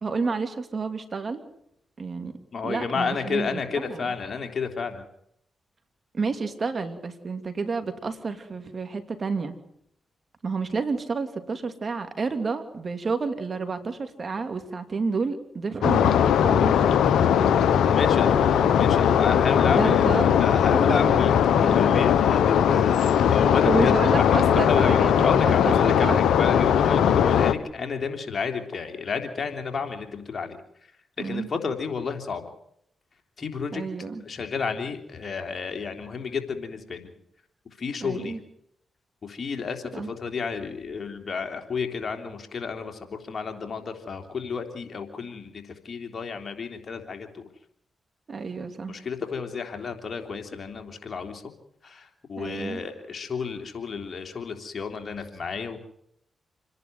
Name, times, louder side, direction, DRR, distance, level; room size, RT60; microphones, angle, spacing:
voice 1, 0.0-1.4 2.0-2.3 2.6-4.1 6.1-9.6 10.4-16.9 18.5-18.8 19.7-20.3 21.1-21.2 21.5-22.1 23.7-26.2 26.9-27.2 31.2-31.5 33.7-34.2 38.0-38.4 39.9-40.1 48.3-49.0 52.4-52.8, right 4 dB, 50° right, 8 dB, 2.9 m, -30 dB
voice 2, 2.5-5.1 17.9-18.5 18.8-23.9 24.2-30.6 31.2-32.4 33.4-33.8 34.2-37.1 37.8-38.3 39.2-47.4 48.9-51.4 51.8-55.8, left 5 dB, 55° left, 5 dB, 3.4 m, -31 dB
sound 1, 15.8-27.5, left 8 dB, 80° left, 1.0 m, -19 dB
28.0 x 11.0 x 9.4 m, 0.74 s
supercardioid pair, 45°, 0 cm